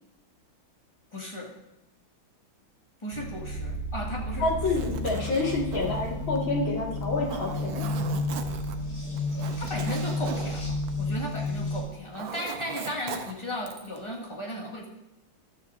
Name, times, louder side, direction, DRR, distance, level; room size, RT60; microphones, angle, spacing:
voice 1, 1.1-1.5 3.0-4.8 9.6-14.9, equal, 15° left, -2 dB, 2.0 m, -36 dB
sound 1, 3.1-11.8, left 1 dB, 45° left, 4.6 m, -32 dB
voice 2, 4.4-7.9, left 3 dB, 70° left, -2 dB, 2.8 m, -28 dB
Zipper (clothing), 4.5-11.6 11.9-14.0, right 6 dB, 70° right, 1.6 m, -40 dB
14.0 x 12.0 x 2.6 m, 0.94 s
omnidirectional pair, 2.3 m